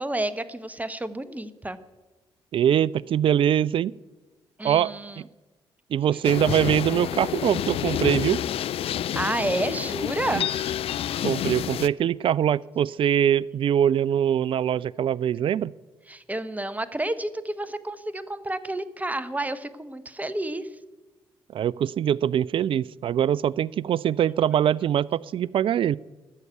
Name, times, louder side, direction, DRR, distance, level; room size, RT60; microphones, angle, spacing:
voice 1, 0.0-1.8 4.6-5.2 8.9-10.5 16.1-20.7, right 1 dB, 10° right, 14 dB, 0.9 m, -30 dB
voice 2, 2.5-3.9 4.6-5.2 5.9-8.4 10.3-10.5 11.2-15.7 21.5-26.0, right 10 dB, 45° right, 23 dB, 0.4 m, -23 dB
sound 1, 6.2-11.9, left 11 dB, 50° left, 0.4 m, -29 dB
13.5 x 6.6 x 8.4 m, 1.2 s
figure-of-eight pair, 40°, 12 cm